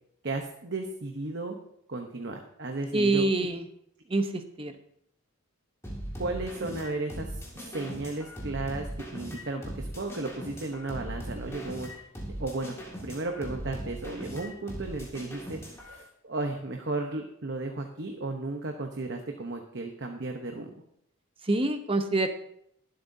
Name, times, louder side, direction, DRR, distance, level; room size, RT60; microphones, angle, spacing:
voice 1, 0.2-1.6 1.9-3.2 6.2-12.1 12.4-12.8 13.0-20.7, right 2 dB, 55° right, 4 dB, 0.9 m, -34 dB
voice 2, 2.9-3.6 4.1-4.7 21.4-22.3, right 2 dB, 25° right, 8 dB, 0.8 m, -26 dB
sound 1, 5.8-15.9, equal, 15° left, 2.0 m, -39 dB
21.5 x 7.8 x 2.7 m, 0.72 s
head